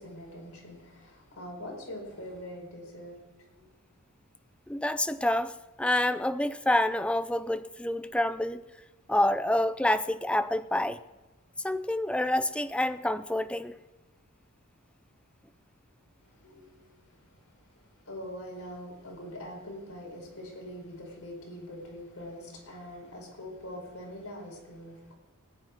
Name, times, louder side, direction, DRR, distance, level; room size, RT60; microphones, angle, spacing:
voice 1, 0.0-3.7 16.2-17.6 17.9-25.1, equal, 65° left, -1 dB, 5.0 m, -43 dB
voice 2, 4.7-8.6 9.1-11.0 11.6-13.7, left 1 dB, 5° left, 12 dB, 0.5 m, -28 dB
19.5 x 9.6 x 4.6 m, 1.1 s
head